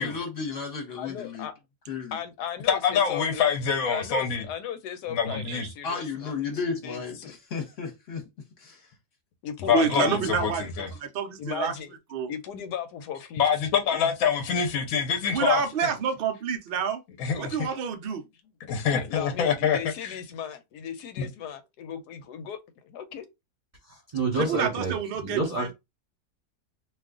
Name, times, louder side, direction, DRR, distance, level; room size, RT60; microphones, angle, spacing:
voice 1, 0.0-1.5 1.9-2.2 5.8-8.3 8.6-8.9, left 5 dB, 45° left, 1.1 m, -33 dB
voice 2, 1.0-1.5 2.1-6.3 6.8-7.4 9.4-10.2 11.4-11.9 12.3-13.4 13.9-14.1 18.9-22.6 22.8-23.3, left 8 dB, 85° left, 1.2 m, -37 dB
voice 3, 2.7-4.4 5.1-5.7 9.7-10.9 13.4-15.9 17.2-17.7 18.7-19.8 20.0-20.2 21.2-21.3, left 7 dB, 65° left, 1.0 m, -25 dB
voice 4, 9.7-10.6 11.0-11.7 12.1-12.3 15.3-17.0 17.4-18.2 24.4-25.7, right 6 dB, 80° right, 0.5 m, -28 dB
voice 5, 23.9-25.7, right 2 dB, 35° right, 0.8 m, -29 dB
2.7 x 2.3 x 3.6 m
omnidirectional pair, 1.7 m